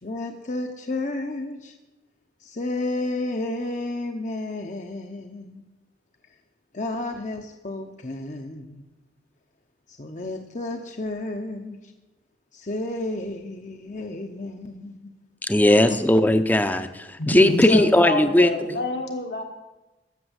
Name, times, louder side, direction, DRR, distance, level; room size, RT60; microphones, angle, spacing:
voice 1, 0.0-1.8 2.4-5.6 6.7-8.8 9.9-11.9 12.5-15.1 15.9-16.0 17.5-17.7, left 2 dB, 40° left, 0.8 m, -32 dB
voice 2, 15.4-18.5, left 1 dB, 10° left, 0.6 m, -18 dB
voice 3, 17.2-19.4, left 1 dB, 70° left, 1.3 m, -26 dB
14.0 x 6.7 x 8.1 m
head